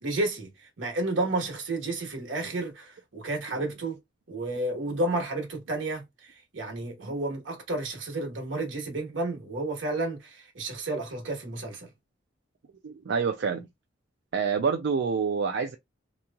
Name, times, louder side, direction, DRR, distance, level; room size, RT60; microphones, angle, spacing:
voice 1, 0.0-4.0 4.3-11.9, right 2 dB, 85° right, 1.2 m, -31 dB
voice 2, 12.8-13.7 14.3-15.8, right 5 dB, 65° right, 0.4 m, -27 dB
3.0 x 2.6 x 2.3 m
head